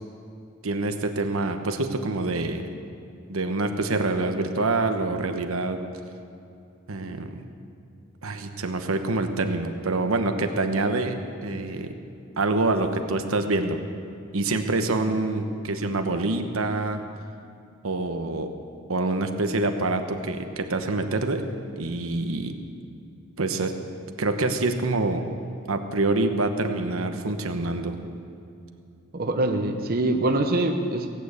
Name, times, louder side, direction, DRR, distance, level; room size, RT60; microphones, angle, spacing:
voice 1, 0.6-2.6 3.3-5.8 6.9-7.4 8.2-11.9 12.4-13.8 14.3-17.0 17.8-18.5 18.9-21.4 21.8-22.5 23.4-23.7 24.2-25.2 25.7-28.0, right 2 dB, 75° right, 6 dB, 1.1 m, -26 dB
voice 2, 29.1-31.1, right 1 dB, 45° right, 4 dB, 0.9 m, -24 dB
17.5 x 8.9 x 8.2 m, 2.6 s
head